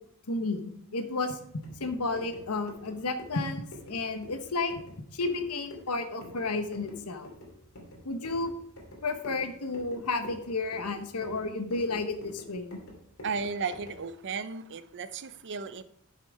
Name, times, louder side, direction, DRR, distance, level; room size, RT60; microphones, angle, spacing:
voice 1, 0.3-4.7 5.1-7.3 8.0-8.5 9.0-12.8, left 3 dB, 85° left, 8 dB, 1.1 m, -32 dB
sound 1, 1.5-14.1, left 1 dB, 65° left, 2.6 m, -48 dB
voice 2, 13.2-15.8, right 5 dB, 55° right, 13 dB, 0.6 m, -34 dB
11.0 x 5.8 x 4.7 m, 0.68 s
head